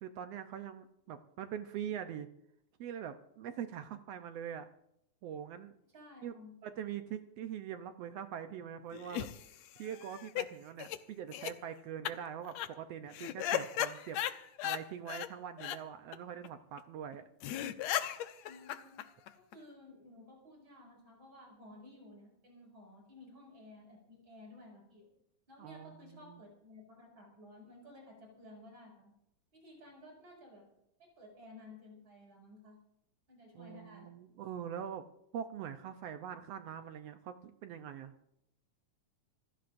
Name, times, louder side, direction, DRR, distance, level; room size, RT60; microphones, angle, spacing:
voice 1, 0.0-2.3 2.8-4.7 5.2-5.7 6.2-6.3 6.6-9.3 9.8-14.2 14.6-17.2 25.6-26.4 33.5-35.0 35.3-38.1, right 9 dB, 75° right, 8 dB, 1.5 m, -43 dB
voice 2, 5.9-6.6 18.4-19.0 19.4-25.1 25.5-29.1 29.5-30.6 31.0-32.8 33.3-34.1, left 2 dB, 40° right, 0 dB, 7.0 m, -55 dB
sound 1, 8.9-10.5 10.8-11.0 11.3-11.5 12.1-12.2 12.5-12.7 13.1-14.8 15.1-15.3 15.6-15.8 16.1-16.2 16.4-16.5 16.8-16.9 17.1-17.2 17.4-19.5, left 12 dB, 75° left, 1.8 m, -36 dB
27.0 x 15.5 x 2.6 m, 0.80 s
omnidirectional pair, 3.6 m